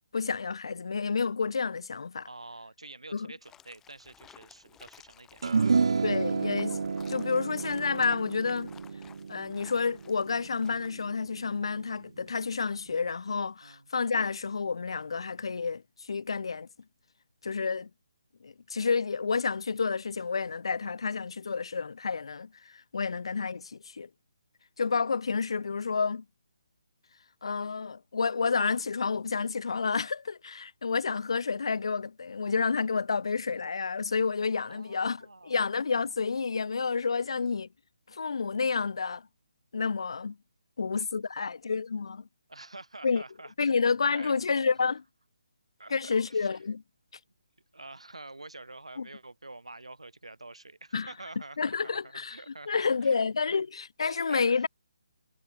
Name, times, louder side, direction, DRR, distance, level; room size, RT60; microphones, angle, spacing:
voice 1, 0.1-2.3 3.1-3.3 6.0-6.8 7.1-8.7 9.3-16.7 17.4-17.9 18.4-24.1 24.8-26.2 27.4-37.7 38.1-39.3 39.7-40.4 40.8-42.3 43.0-43.2 43.6-45.0 45.9-46.8 49.0-49.1 50.9-51.1 51.6-52.4 52.7-54.7, left 5 dB, 60° left, 0.7 m, -30 dB
voice 2, 2.3-5.6 13.6-13.9 34.6-35.6 42.5-43.7 44.1-44.4 45.8-46.6 47.7-53.2 53.5-53.6 54.0-54.4, right 2 dB, 80° right, 1.9 m, -47 dB
sound 1, 3.4-10.9, left 9 dB, 10° left, 3.8 m, -56 dB
sound 2, 5.4-12.0, right 5 dB, 60° right, 0.9 m, -31 dB
figure-of-eight pair, 145°, 3 cm